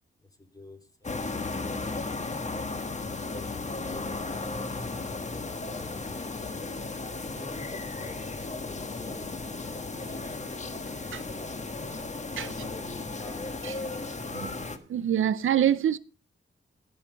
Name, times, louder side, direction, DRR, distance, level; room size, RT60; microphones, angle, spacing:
voice 1, 0.4-1.3 3.2-6.5 7.3-8.4 8.7-10.5 10.7-11.5 12.2-13.5, left 1 dB, 15° left, 3.1 m, -49 dB
sound 1, 1.0-14.8, left 3 dB, 35° left, 1.5 m, -35 dB
voice 2, 14.9-16.0, right 10 dB, 75° right, 0.6 m, -25 dB
17.5 x 5.9 x 5.1 m
cardioid pair, 70°, 21 cm